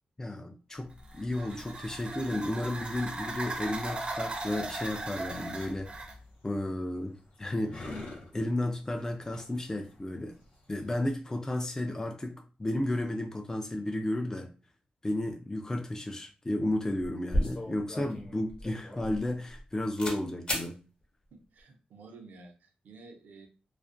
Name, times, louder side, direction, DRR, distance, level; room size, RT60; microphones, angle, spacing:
voice 1, 0.2-6.1 6.4-8.0 8.3-10.3 10.7-14.5 15.0-20.8, left 1 dB, 20° left, 4 dB, 0.3 m, -33 dB
sound 1, 0.9-6.2, right 2 dB, 35° right, 0.5 m, -38 dB
sound 2, 5.5-11.2, left 2 dB, 70° left, 0.7 m, -48 dB
sound 3, 17.3-19.7 20.0-20.2 20.5-20.7, equal, 35° left, 0.9 m, -33 dB
voice 2, 21.3-23.5, right 3 dB, 85° right, 4 dB, 0.5 m, -52 dB
2.4 x 2.1 x 2.5 m, 0.36 s
cardioid pair, 65°, 3 cm